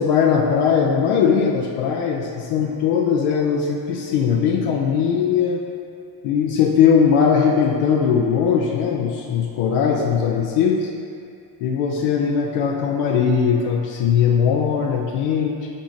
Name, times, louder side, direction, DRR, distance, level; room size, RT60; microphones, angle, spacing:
voice 1, 0.0-5.6 6.2-10.9 11.6-15.7, left 7 dB, 80° left, -1 dB, 0.6 m, -19 dB
10.0 x 3.8 x 2.6 m, 2.4 s
supercardioid pair, 60°, 50 cm